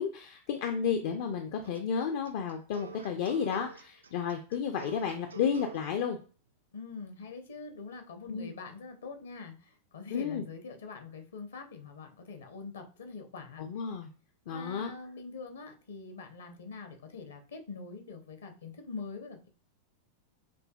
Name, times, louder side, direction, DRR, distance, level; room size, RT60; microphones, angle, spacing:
voice 1, 0.0-6.2 8.3-8.5 10.1-10.4 13.6-14.1 14.5-14.9, left 7 dB, 50° left, 5 dB, 0.5 m, -32 dB
sound 1, 1.6-5.9, right 5 dB, 70° right, 0.4 m, -47 dB
voice 2, 6.7-13.6 14.5-19.5, left 4 dB, 65° left, 6 dB, 0.9 m, -44 dB
6.1 x 2.7 x 2.3 m, 0.37 s
figure-of-eight pair, 90°, 0 cm